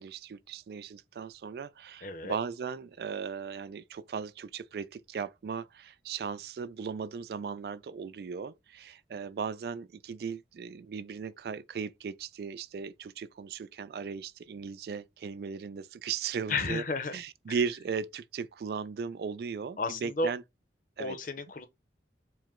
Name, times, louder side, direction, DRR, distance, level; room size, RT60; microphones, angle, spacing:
voice 1, 0.0-16.8 17.1-20.4 21.0-21.2, right 6 dB, 60° right, 0.3 m, -37 dB
voice 2, 2.0-2.4 16.5-17.2 19.8-20.3 21.0-21.7, left 3 dB, 50° left, 0.6 m, -32 dB
4.7 x 2.1 x 3.6 m
head